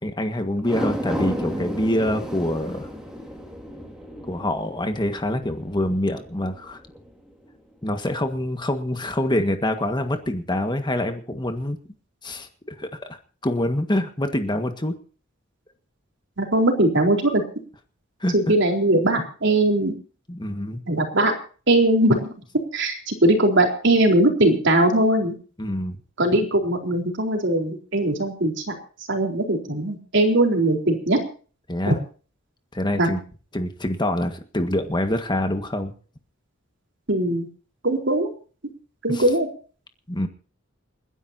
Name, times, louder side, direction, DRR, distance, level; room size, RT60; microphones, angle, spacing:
voice 1, 0.0-2.9 4.2-6.8 7.8-11.8 12.2-15.0 18.2-18.5 20.3-20.8 25.6-26.0 31.7-32.0 32.7-33.2 33.5-35.9 39.1-39.3 40.1-40.3, left 1 dB, 25° left, 7 dB, 1.7 m, -25 dB
sound 1, 0.6-7.1 7.5-7.6, equal, 5° right, 3.6 m, -33 dB
voice 2, 16.4-17.4 18.3-19.9 20.9-21.3 21.7-22.3 22.7-25.3 26.2-28.7 29.1-31.2 31.9-32.0 33.0-33.1 37.1-37.5 37.8-38.3 39.0-39.5, right 1 dB, 65° right, 3 dB, 4.1 m, -20 dB
29.0 x 11.0 x 2.8 m, 0.39 s
head